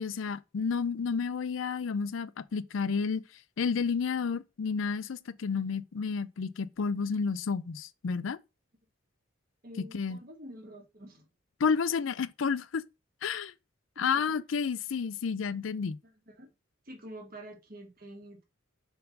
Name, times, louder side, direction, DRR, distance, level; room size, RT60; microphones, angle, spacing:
voice 1, 0.0-3.2 3.6-8.4 9.8-10.2 11.6-12.8 13.2-13.5 14.0-16.0, left 5 dB, 75° left, 0.5 m, -31 dB
voice 2, 9.6-11.3 14.0-14.4 16.0-16.5 16.8-18.4, right 1 dB, 45° right, 1.5 m, -47 dB
4.5 x 4.0 x 5.2 m
head